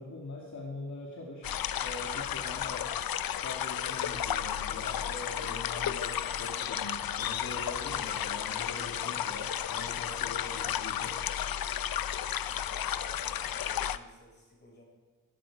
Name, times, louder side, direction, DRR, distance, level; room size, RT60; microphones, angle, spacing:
voice 1, 0.0-2.9 3.4-11.2, left 2 dB, 55° left, -2 dB, 2.6 m, -43 dB
sound 1, 1.4-14.0, left 10 dB, 80° left, 0.7 m, -33 dB
voice 2, 12.6-14.8, left 1 dB, 30° left, -2 dB, 6.8 m, -55 dB
22.0 x 13.0 x 5.0 m, 1.4 s
wide cardioid pair, 125°, 35 cm